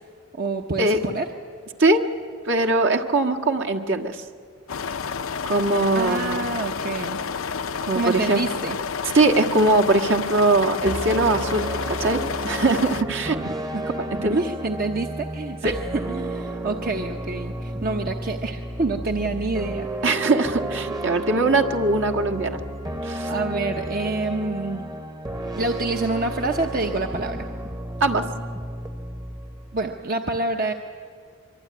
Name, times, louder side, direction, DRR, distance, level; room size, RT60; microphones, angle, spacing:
voice 1, 0.3-1.3 5.9-7.2 7.9-8.8 13.3-13.9 14.1-20.1 23.3-24.9 25.6-27.5 29.7-30.7, right 3 dB, 45° right, 3 dB, 1.0 m, -27 dB
voice 2, 2.4-4.2 5.5-6.4 7.9-8.4 9.1-13.4 14.0-14.4 20.0-22.6 23.0-23.3 28.0-28.2, right 2 dB, 60° right, 4 dB, 1.7 m, -21 dB
sound 1, 4.7-13.0, left 6 dB, 70° left, 0.7 m, -30 dB
sound 2, 10.8-30.0, right 1 dB, 20° right, 1.0 m, -32 dB
25.0 x 24.0 x 9.6 m, 2.1 s
head